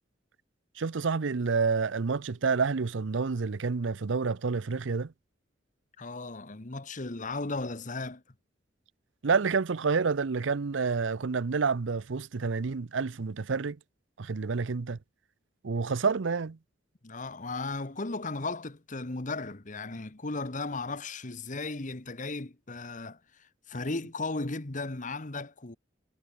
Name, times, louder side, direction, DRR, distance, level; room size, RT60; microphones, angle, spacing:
voice 1, 0.8-5.1 9.2-13.8 14.2-15.0 15.6-16.6, right 5 dB, 90° right, 0.6 m, -28 dB
voice 2, 6.0-8.2 17.0-25.8, left 3 dB, 45° left, 1.4 m, -36 dB
head